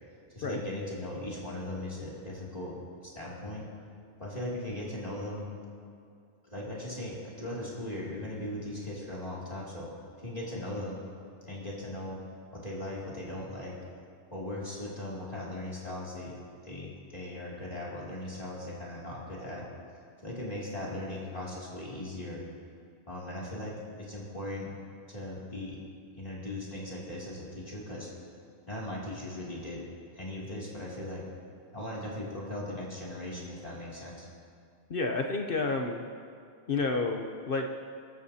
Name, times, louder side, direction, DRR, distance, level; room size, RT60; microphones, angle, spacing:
voice 1, 0.3-2.8 3.0-3.6 4.2-5.5 6.5-9.9 10.2-11.0 11.5-12.2 12.5-13.8 14.3-16.3 16.6-19.7 20.2-22.4 23.1-24.7 25.1-25.8 26.2-28.1 28.7-29.8 30.1-31.3 31.7-34.3, left 1 dB, 35° left, -6 dB, 2.8 m, -38 dB
voice 2, 34.9-36.0 36.7-37.6, left 3 dB, 60° left, 3 dB, 1.0 m, -30 dB
25.0 x 14.0 x 2.8 m, 2.3 s
omnidirectional pair, 1.1 m